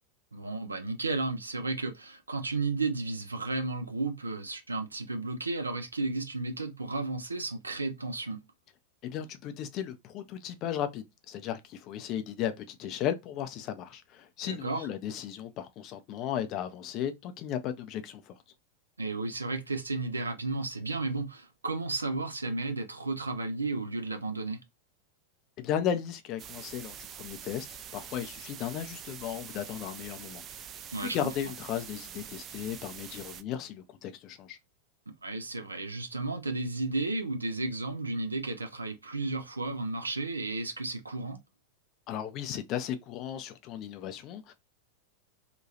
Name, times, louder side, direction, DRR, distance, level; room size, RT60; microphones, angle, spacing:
voice 1, 0.3-8.4 14.5-14.9 19.0-24.6 30.9-31.2 35.2-41.4, right 3 dB, 80° right, 0.6 m, -33 dB
voice 2, 9.0-18.3 25.6-27.7 27.9-30.7 31.0-34.6 42.1-44.5, left 10 dB, 35° left, 0.5 m, -35 dB
sound 1, 26.4-33.4, right 9 dB, 30° right, 0.3 m, -45 dB
2.9 x 2.3 x 2.7 m
figure-of-eight pair, 90°, 0 cm